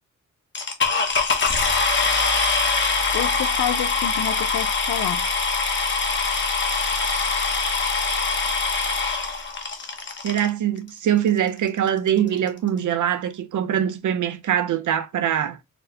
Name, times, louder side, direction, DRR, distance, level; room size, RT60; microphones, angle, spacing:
sound 1, 0.5-10.5 11.3-11.4 11.9-12.0 12.2-12.5, left 4 dB, 35° left, 0.8 m, -23 dB
voice 1, 3.1-5.3, left 11 dB, 90° left, 0.5 m, -28 dB
voice 2, 10.2-15.6, right 10 dB, 70° right, 0.6 m, -23 dB
4.2 x 2.1 x 2.7 m
cardioid pair, 95°, 32 cm